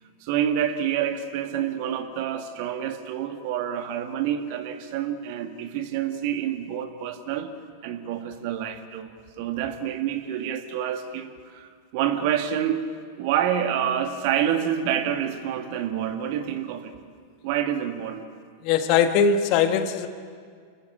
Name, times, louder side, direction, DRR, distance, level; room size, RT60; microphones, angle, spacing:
voice 1, 0.2-7.5 7.8-9.1 9.4-12.9 13.2-16.9 17.4-18.3, right 9 dB, 45° right, 7 dB, 2.0 m, -27 dB
voice 2, 18.6-20.1, left 6 dB, 45° left, 9 dB, 1.5 m, -20 dB
30.0 x 14.5 x 8.8 m, 2.1 s
figure-of-eight pair, 90°, 0 cm